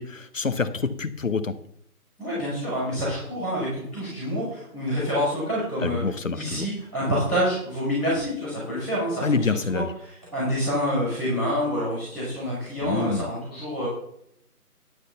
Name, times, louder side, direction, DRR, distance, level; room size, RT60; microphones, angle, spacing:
voice 1, 0.0-1.5 5.8-6.7 9.2-9.9 12.8-13.3, left 4 dB, 55° left, 11 dB, 1.0 m, -27 dB
voice 2, 2.2-6.0 6.3-9.8 10.3-13.9, equal, ahead, -20 dB, 2.0 m, -27 dB
11.0 x 6.3 x 5.6 m, 0.71 s
figure-of-eight pair, 165°, 46 cm